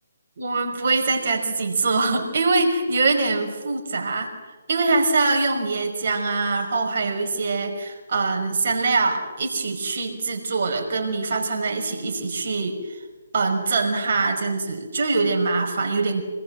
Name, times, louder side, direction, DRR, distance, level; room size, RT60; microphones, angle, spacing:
voice 1, 0.4-4.3 4.7-13.0 13.3-16.2, right 3 dB, 55° right, 3 dB, 5.6 m, -23 dB
27.0 x 21.5 x 7.8 m, 1.3 s
hypercardioid pair, 150°, 0 cm